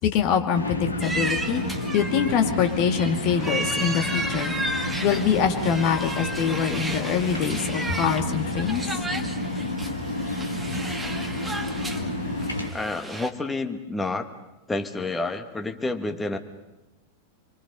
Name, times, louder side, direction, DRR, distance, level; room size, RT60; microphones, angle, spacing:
voice 1, 0.0-1.6 1.9-4.5 5.0-8.8, left 8 dB, 45° left, 5 dB, 2.5 m, -24 dB
sound 1, 0.5-12.7, left 1 dB, 80° left, 2.3 m, -30 dB
sound 2, 1.0-13.3, right 2 dB, 5° right, 1.8 m, -33 dB
voice 2, 12.7-14.3 14.7-16.4, left 2 dB, 10° left, 7 dB, 1.8 m, -29 dB
28.0 x 23.5 x 5.6 m, 0.97 s
figure-of-eight pair, 90°, 0 cm